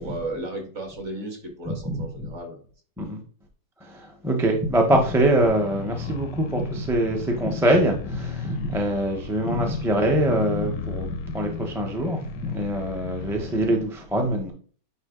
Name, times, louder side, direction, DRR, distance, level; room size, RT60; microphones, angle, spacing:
voice 1, 0.0-2.7, right 2 dB, 40° right, 2.2 m, -35 dB
voice 2, 1.7-2.0 3.0-3.2 3.8-14.5, right 1 dB, ahead, 0.7 m, -24 dB
sound 1, 5.4-13.7, left 8 dB, 80° left, 1.3 m, -35 dB
9.4 x 3.2 x 3.7 m
omnidirectional pair, 1.9 m